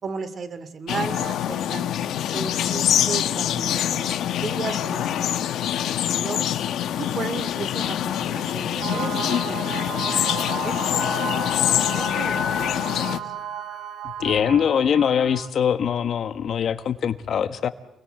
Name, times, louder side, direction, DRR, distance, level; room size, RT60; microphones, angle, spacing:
voice 1, 0.0-1.9 2.3-5.7 6.0-6.4 7.0-11.3 11.6-13.3, right 5 dB, 50° right, 13 dB, 2.5 m, -35 dB
sound 1, 0.9-13.2, left 11 dB, 75° left, 1.2 m, -25 dB
sound 2, 8.8-15.5, right 10 dB, 80° right, 2.1 m, -34 dB
Wind instrument woodwind instrument, 10.9-14.4, left 5 dB, 45° left, 1.7 m, -35 dB
voice 2, 14.2-17.7, left 8 dB, 60° left, 11 dB, 1.4 m, -22 dB
28.5 x 21.0 x 7.9 m, 0.92 s
cardioid pair, 90°, 0 cm